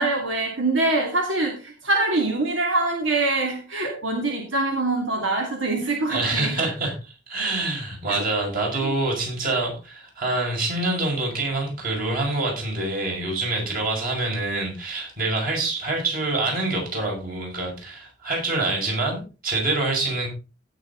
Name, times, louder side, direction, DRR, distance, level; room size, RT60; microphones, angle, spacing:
voice 1, 0.0-6.6 8.1-8.3 8.8-9.0, right 2 dB, 85° right, 1 dB, 2.7 m, -24 dB
voice 2, 6.1-20.3, right 2 dB, 50° right, 0 dB, 6.2 m, -26 dB
17.0 x 6.6 x 3.9 m, 0.32 s
head